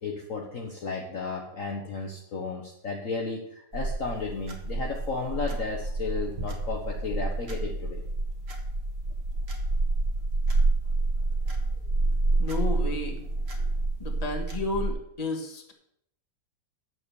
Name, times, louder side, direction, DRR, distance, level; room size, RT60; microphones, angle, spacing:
voice 1, 0.0-8.0, left 4 dB, 50° left, 0 dB, 1.4 m, -34 dB
sound 1, 3.7-14.9, right 2 dB, 35° right, 1.6 m, -28 dB
voice 2, 12.4-13.2 14.0-15.7, left 2 dB, 20° left, 2 dB, 1.6 m, -32 dB
9.1 x 6.9 x 7.0 m, 0.74 s
omnidirectional pair, 2.0 m